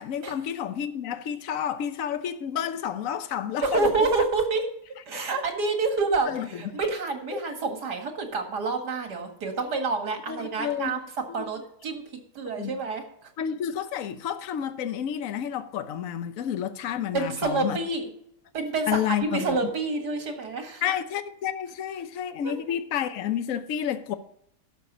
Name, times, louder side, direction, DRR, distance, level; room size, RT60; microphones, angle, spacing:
voice 1, 0.0-4.1 6.3-6.5 7.3-7.4 10.3-11.0 11.3-11.5 12.6-12.8 13.4-17.8 18.9-19.5 20.8-24.1, left 9 dB, 60° left, 1.2 m, -30 dB
voice 2, 3.6-4.6 5.1-11.0 11.3-12.0 12.3-13.3 17.1-18.0 18.5-20.8 22.4-22.5, right 3 dB, 80° right, 2.5 m, -28 dB
11.5 x 7.0 x 5.4 m
omnidirectional pair, 1.7 m